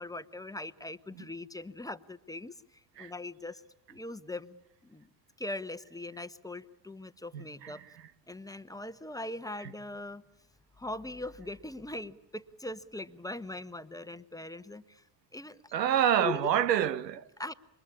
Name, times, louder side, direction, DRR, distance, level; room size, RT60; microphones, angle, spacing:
voice 1, 0.0-2.5 3.0-3.6 3.9-5.1 5.4-7.8 8.3-10.2 10.8-15.0 15.3-15.7 16.2-16.5 17.4-17.5, left 2 dB, 5° left, 1.1 m, -41 dB
voice 2, 7.3-7.7 15.7-17.2, right 10 dB, 80° right, 1.0 m, -27 dB
28.5 x 24.0 x 8.6 m
figure-of-eight pair, 60°, 49 cm